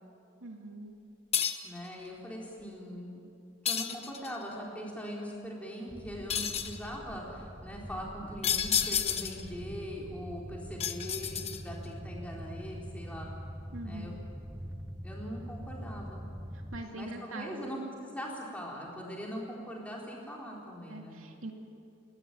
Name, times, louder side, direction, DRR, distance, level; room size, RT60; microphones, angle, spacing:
voice 1, 0.4-0.9 13.7-14.2 16.5-17.8 20.9-21.5, right 1 dB, 75° right, 2 dB, 2.4 m, -43 dB
sound 1, 1.3-1.8 3.6-4.4 6.3-6.8 8.4-9.5 10.8-11.8, left 8 dB, 30° left, 1.0 m, -31 dB
voice 2, 1.6-3.2 3.6-13.3 13.8-14.1 15.0-16.2 16.9-21.2, equal, 5° left, -3 dB, 4.0 m, -41 dB
sound 2, 5.9-16.8, equal, 10° right, 0.6 m, -44 dB
30.0 x 13.5 x 9.1 m, 2.6 s
head